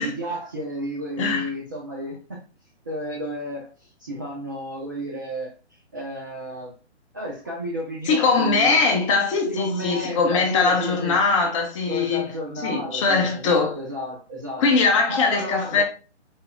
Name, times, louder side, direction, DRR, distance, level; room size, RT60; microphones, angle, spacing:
voice 1, 0.0-2.4 2.9-3.7 4.0-5.5 5.9-6.7 7.1-8.8 9.5-11.2 11.9-14.7 15.1-15.8, equal, 20° right, 0.4 m, -32 dB
voice 2, 1.2-1.5 8.1-12.2 12.6-13.8 14.6-15.8, left 4 dB, 25° left, 0.9 m, -21 dB
4.4 x 3.3 x 2.2 m
figure-of-eight pair, 135°, 35 cm